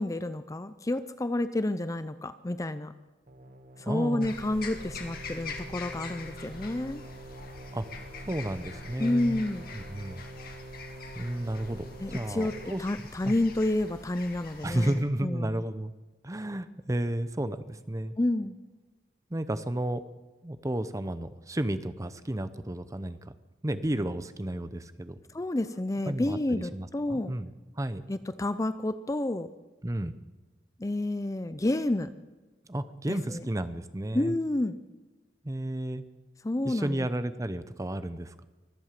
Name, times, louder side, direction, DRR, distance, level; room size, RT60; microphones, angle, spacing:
voice 1, 0.0-2.9 3.8-7.0 9.0-9.7 12.0-15.6 18.2-18.5 25.3-27.3 28.1-29.5 30.8-32.1 33.1-33.4 34.1-34.8 36.4-37.0, left 1 dB, 20° left, 13 dB, 0.5 m, -30 dB
sound 1, 3.3-12.7, right 1 dB, 50° right, 1.4 m, -46 dB
voice 2, 3.9-4.3 7.7-7.9 8.3-9.4 9.7-10.2 11.1-12.8 13.3-13.4 14.6-15.9 16.2-18.2 19.3-20.0 20.4-23.2 23.6-25.2 26.1-28.0 29.8-30.1 32.7-34.3 35.4-36.0 36.6-38.4, right 1 dB, 20° right, 12 dB, 0.7 m, -32 dB
sound 2, 4.2-15.0, left 3 dB, 60° left, 2.3 m, -44 dB
24.0 x 8.0 x 7.5 m, 1.2 s
head